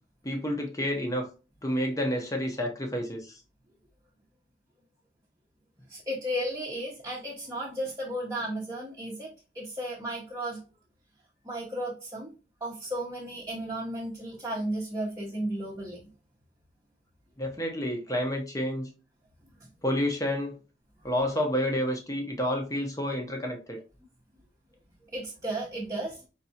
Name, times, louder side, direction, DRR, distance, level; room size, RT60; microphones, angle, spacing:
voice 1, 0.2-1.3 1.6-3.3 17.4-18.9 19.8-20.6 21.0-23.8, equal, 20° left, 2 dB, 0.8 m, -29 dB
voice 2, 5.9-10.6 11.4-12.3 12.6-16.0 25.1-26.2, right 1 dB, 20° right, -5 dB, 0.8 m, -34 dB
4.4 x 3.3 x 2.7 m, 0.32 s
head